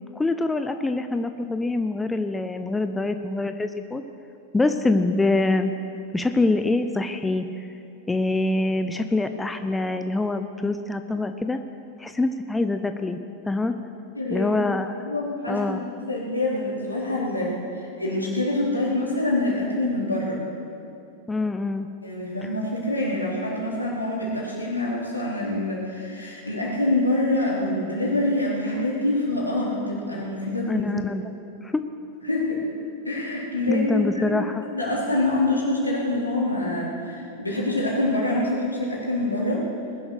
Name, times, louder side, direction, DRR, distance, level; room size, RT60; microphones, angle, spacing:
voice 1, 0.2-4.0 4.5-5.7 6.1-7.5 8.1-11.6 12.0-13.2 13.5-13.8 14.3-15.1 15.5-15.8 21.3-21.9 30.7-31.2 31.6-31.8 33.7-34.7, left 2 dB, 10° left, 8 dB, 0.7 m, -25 dB
voice 2, 14.1-14.6 15.0-20.4 22.0-31.1 32.2-32.6 33.1-39.7, left 2 dB, 85° left, -4 dB, 3.8 m, -26 dB
20.0 x 11.0 x 6.4 m, 2.6 s
figure-of-eight pair, 90°, 0 cm